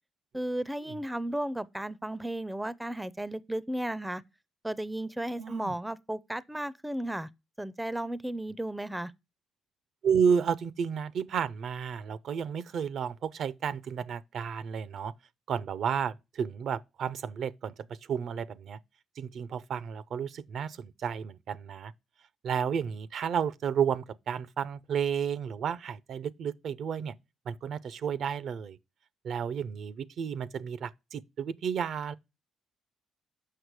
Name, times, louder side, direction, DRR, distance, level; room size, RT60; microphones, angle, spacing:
voice 1, 0.3-4.2 4.6-7.3 7.6-9.1, right 1 dB, 5° right, 0.4 m, -34 dB
voice 2, 5.4-5.7 10.0-15.1 15.5-17.7 18.1-18.8 19.2-21.9 22.4-27.1 27.5-28.8 29.2-32.1, right 7 dB, 65° right, 0.5 m, -32 dB
6.6 x 5.9 x 4.7 m
cardioid pair, 90°, 0 cm